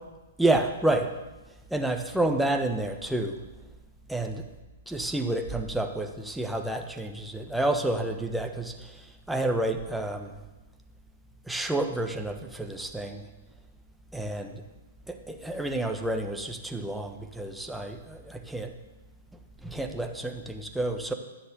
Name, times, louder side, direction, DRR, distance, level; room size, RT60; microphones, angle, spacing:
voice 1, 0.4-1.1 1.7-3.4 4.1-4.5 4.9-10.3 11.5-13.2 14.1-14.6 15.1-18.7 19.6-21.1, right 2 dB, ahead, 4 dB, 1.3 m, -29 dB
14.5 x 7.1 x 9.2 m, 1.1 s
figure-of-eight pair, 110°, 0 cm